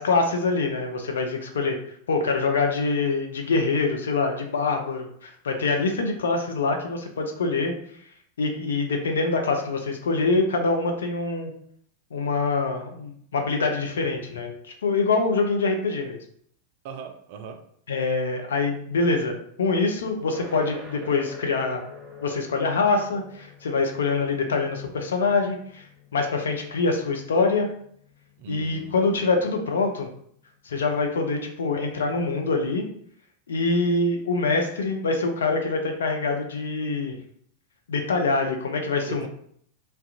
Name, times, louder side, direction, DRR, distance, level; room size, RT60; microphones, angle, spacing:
voice 1, 0.0-1.8 2.1-7.7 8.4-11.5 12.1-14.5 14.8-16.2 17.9-21.8 22.2-25.9 26.1-27.7 28.5-30.1 30.7-32.9 33.5-37.2 37.9-39.3, left 3 dB, 65° left, 0.4 m, -25 dB
voice 2, 16.8-17.6 28.4-29.4 39.1-39.3, right 6 dB, 50° right, 0.3 m, -40 dB
sound 1, 20.2-31.2, left 2 dB, 5° right, 1.2 m, -49 dB
2.4 x 2.1 x 2.7 m
figure-of-eight pair, 90°, 0 cm